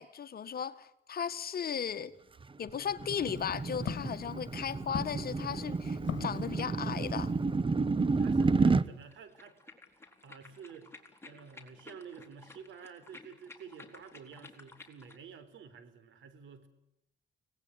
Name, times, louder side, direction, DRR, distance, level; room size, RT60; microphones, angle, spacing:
voice 1, 0.0-2.1 2.6-7.3, left 8 dB, 50° left, 1.6 m, -36 dB
sound 1, 2.4-8.9, right 4 dB, 25° right, 1.1 m, -30 dB
Walk footsteps, 3.0-7.6, left 10 dB, 65° left, 1.7 m, -44 dB
voice 2, 8.2-9.6 10.2-11.0 11.2-16.7, right 6 dB, 75° right, 4.1 m, -50 dB
Dog Drinking - Water, 9.0-15.2, left 3 dB, 10° left, 4.1 m, -54 dB
25.0 x 19.0 x 10.0 m
cardioid pair, 90°, 20 cm